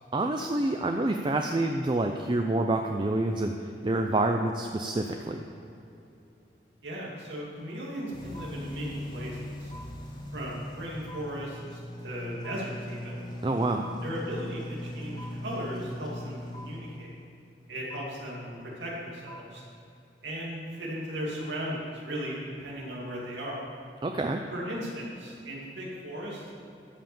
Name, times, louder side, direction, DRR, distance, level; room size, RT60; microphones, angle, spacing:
voice 1, 0.1-5.4 13.4-13.8 24.0-24.4, right 2 dB, 25° right, 4 dB, 0.5 m, -27 dB
voice 2, 6.8-9.7 10.3-13.2 14.0-17.1 17.7-19.6 20.2-23.6 24.5-26.6, equal, 80° right, -4 dB, 2.4 m, -37 dB
sound 1, 8.1-17.2 17.9-18.0 19.3-19.4, equal, 25° left, 1.5 m, -40 dB
13.0 x 5.6 x 7.0 m, 2.8 s
head